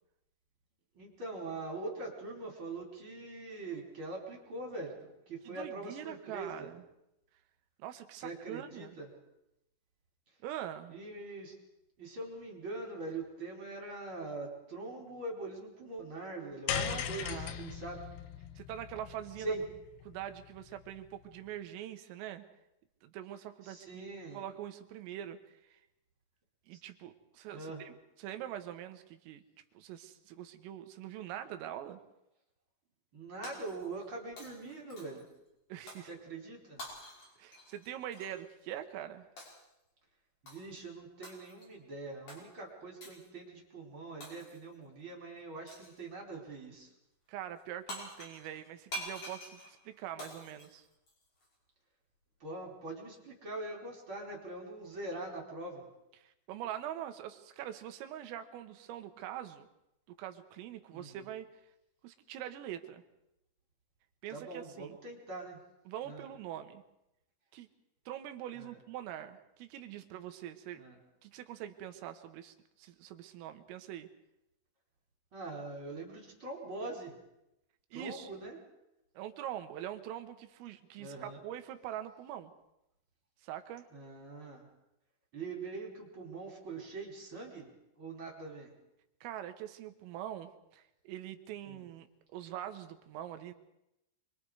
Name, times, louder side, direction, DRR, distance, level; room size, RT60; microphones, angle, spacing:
voice 1, 0.9-6.7 8.1-9.1 10.9-11.5 12.0-18.0 19.4-19.6 23.6-24.4 26.7-26.8 27.5-27.8 33.1-35.3 36.1-36.8 40.4-46.9 52.4-55.9 60.9-61.3 64.3-65.6 66.0-66.3 68.6-68.8 70.8-71.0 75.3-77.2 77.9-78.6 81.0-81.4 83.9-84.7 85.3-87.7 87.9-88.7 91.6-91.8, right 2 dB, 25° right, -1 dB, 4.3 m, -43 dB
voice 2, 5.5-6.8 7.8-9.0 10.4-11.0 16.7-17.7 18.6-19.6 20.1-22.5 23.0-23.9 24.3-25.8 26.7-29.4 29.8-32.0 35.7-36.1 37.4-39.3 47.3-50.9 56.2-59.7 60.2-61.5 62.0-63.0 64.2-65.0 65.9-66.8 67.5-67.7 68.1-70.8 71.2-74.1 77.9-78.3 79.2-82.5 83.4-83.9 89.2-93.5, right 11 dB, 90° right, 8 dB, 4.0 m, -44 dB
sound 1, 16.7-21.1, left 9 dB, 70° left, 2.7 m, -39 dB
Shatter, 33.4-34.1 34.4-35.3 35.9-36.1 36.8-38.4 39.4-39.7 40.5-40.8 41.2-41.7 42.3-42.4 43.0-43.3 44.2-44.7 45.7-46.0 47.6-47.7 47.9-51.5, equal, 40° left, 7.1 m, -47 dB
27.0 x 23.5 x 4.9 m, 0.87 s
omnidirectional pair, 5.7 m